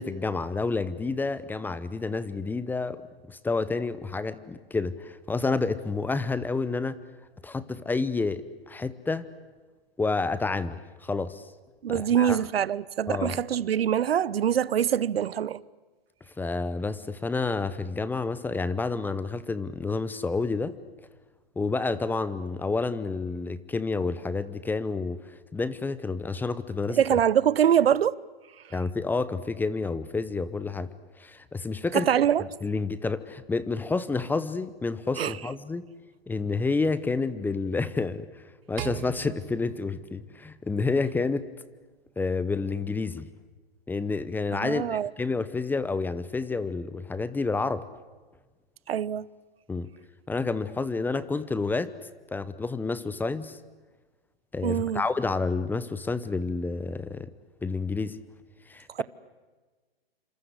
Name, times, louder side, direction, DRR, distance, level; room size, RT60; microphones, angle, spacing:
voice 1, 0.0-3.0 3.3-7.0 7.4-9.3 10.0-11.4 11.9-12.4 13.1-13.4 16.4-20.7 21.6-25.2 25.5-27.2 28.7-30.9 31.2-32.1 32.6-35.8 36.3-38.4 38.7-41.5 42.2-43.3 43.9-47.9 49.7-49.9 50.3-51.9 52.3-53.6 54.5-57.3 57.6-58.2 58.7-59.0, left 3 dB, 5° left, 0.9 m, -29 dB
voice 2, 11.8-15.6 26.9-28.1 31.9-32.4 35.2-35.4 44.6-45.1 48.9-49.3 54.6-55.0, right 9 dB, 75° right, 0.9 m, -24 dB
sound 1, 38.8-41.2, right 13 dB, 50° right, 1.7 m, -41 dB
27.0 x 27.0 x 8.1 m
hypercardioid pair, 135°, 30 cm